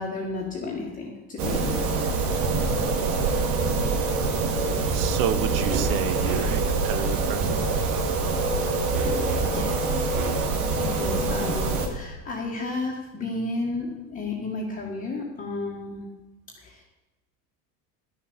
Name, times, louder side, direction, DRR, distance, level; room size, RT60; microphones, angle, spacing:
voice 1, 0.0-2.1 9.0-9.1 9.4-10.1 10.7-16.1 16.6-16.8, left 3 dB, 20° left, -3 dB, 1.6 m, -33 dB
sound 1, 1.4-11.9, right 3 dB, 85° right, 2.4 m, -25 dB
voice 2, 4.9-7.6, right 10 dB, 50° right, 12 dB, 0.9 m, -30 dB
11.5 x 7.1 x 7.0 m, 1.1 s
cardioid pair, 165°, 42 cm